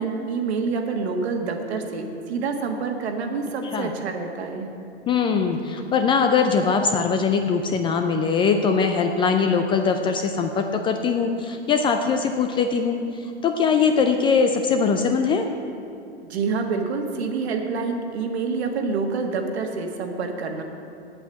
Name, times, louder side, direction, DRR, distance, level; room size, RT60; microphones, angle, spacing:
voice 1, 0.0-4.7 16.3-20.6, right 4 dB, 70° right, 4 dB, 1.6 m, -27 dB
voice 2, 5.1-15.5, left 5 dB, 15° left, 6 dB, 0.3 m, -21 dB
8.2 x 7.9 x 8.1 m, 2.6 s
hypercardioid pair, 115°, 33 cm